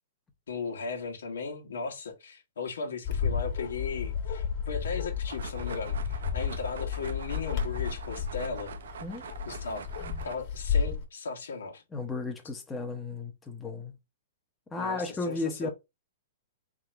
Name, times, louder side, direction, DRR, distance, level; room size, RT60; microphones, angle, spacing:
voice 1, 0.5-8.7 9.4-9.9 10.2-11.8 14.7-15.7, left 5 dB, 90° left, 1.5 m, -37 dB
Bark, 3.0-11.0, left 7 dB, 40° left, 1.5 m, -32 dB
sound 1, 5.2-10.4, right 7 dB, 80° right, 0.5 m, -44 dB
voice 2, 9.7-10.2 11.9-13.9 14.7-15.7, left 3 dB, 10° left, 0.8 m, -35 dB
3.7 x 2.9 x 4.4 m
hypercardioid pair, 150°, 0 cm